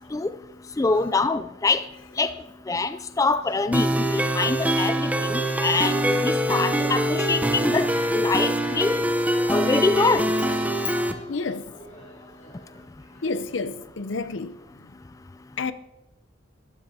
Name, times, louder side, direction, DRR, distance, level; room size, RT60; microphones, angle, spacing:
voice 1, 0.8-1.8 2.2-2.3 2.7-7.9 8.1-9.0 9.5-10.2, left 3 dB, 15° left, 0.3 m, -24 dB
sound 1, 3.4-13.3, left 1 dB, 35° left, 4.4 m, -50 dB
sound 2, 3.7-11.1, right 1 dB, 10° right, 0.7 m, -24 dB
voice 2, 11.3-11.7 13.2-14.6 15.6-15.7, left 4 dB, 75° left, 0.7 m, -30 dB
22.0 x 12.5 x 2.8 m
head